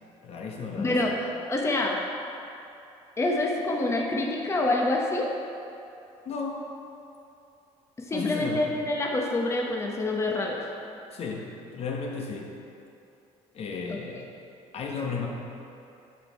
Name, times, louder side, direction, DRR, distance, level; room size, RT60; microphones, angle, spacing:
voice 1, 0.2-1.1 6.2-6.7 8.1-8.7 11.1-12.5 13.5-14.3 14.7-15.3, left 4 dB, 50° left, 0 dB, 0.9 m, -34 dB
voice 2, 0.8-1.2 1.5-2.0 3.2-5.3 8.1-10.6 13.9-14.0, left 2 dB, 20° left, -1 dB, 0.8 m, -26 dB
6.8 x 5.3 x 4.4 m, 2.8 s
cardioid pair, 95°, 13 cm